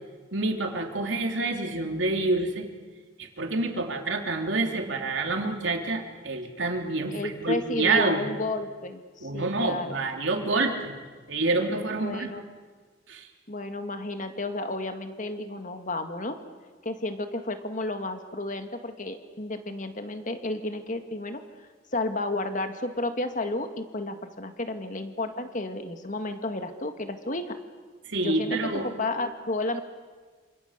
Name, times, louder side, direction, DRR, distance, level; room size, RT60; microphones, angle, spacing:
voice 1, 0.3-2.7 3.2-8.3 9.2-10.9 11.3-12.3 13.1-13.3 28.1-28.9, right 2 dB, 75° right, 2 dB, 3.6 m, -27 dB
voice 2, 7.1-10.0 12.0-12.4 13.5-16.4 16.8-21.4 21.9-27.6 28.2-28.6 28.8-29.8, left 2 dB, 40° left, 7 dB, 1.9 m, -32 dB
28.0 x 27.0 x 6.8 m, 1.5 s
head